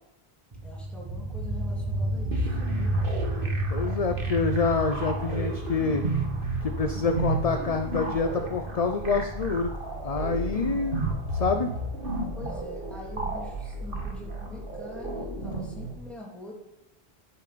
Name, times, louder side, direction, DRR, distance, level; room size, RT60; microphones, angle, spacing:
sound 1, 0.5-12.1, right 1 dB, 40° right, 1.2 m, -32 dB
voice 1, 0.6-3.0 12.4-16.5, equal, ahead, -3 dB, 3.2 m, -44 dB
sound 2, 2.3-15.9, right 2 dB, 60° right, 2.0 m, -33 dB
voice 2, 3.7-6.0 6.6-11.0 11.3-11.7, left 4 dB, 40° left, 7 dB, 0.7 m, -27 dB
9.9 x 7.2 x 7.8 m, 0.88 s
omnidirectional pair, 1.0 m